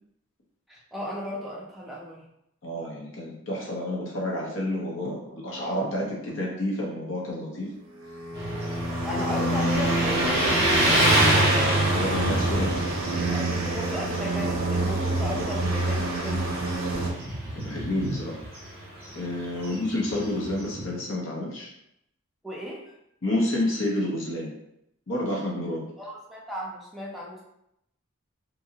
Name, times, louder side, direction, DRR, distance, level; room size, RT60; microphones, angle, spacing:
voice 1, 0.7-2.3 9.0-11.5 13.3-16.5 19.5-19.8 22.4-22.9 26.0-27.4, equal, ahead, -4 dB, 0.5 m, -35 dB
voice 2, 2.6-7.7 9.2-9.5 11.9-13.6 16.3-16.4 17.6-18.4 19.1-21.7 23.2-24.5 25.1-25.9, left 1 dB, 60° left, -3 dB, 0.6 m, -30 dB
sound 1, 8.0-17.1, right 2 dB, 65° right, 0.5 m, -27 dB
Motorcycle, 8.3-21.0, right 1 dB, 25° right, 1.0 m, -27 dB
2.6 x 2.5 x 2.8 m, 0.79 s
head